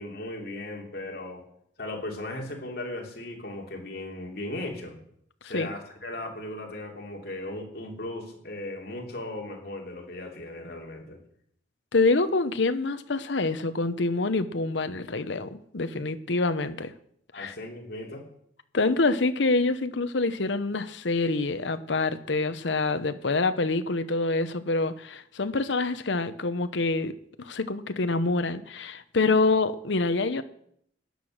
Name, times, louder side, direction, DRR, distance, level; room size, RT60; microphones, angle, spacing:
voice 1, 0.0-1.4 1.8-5.0 5.4-11.2 17.3-18.3, left 1 dB, 55° left, 0 dB, 3.0 m, -37 dB
voice 2, 11.9-16.9 17.3-17.5 18.7-30.4, left 3 dB, 75° left, 11 dB, 0.9 m, -26 dB
13.5 x 9.6 x 6.5 m, 0.69 s
head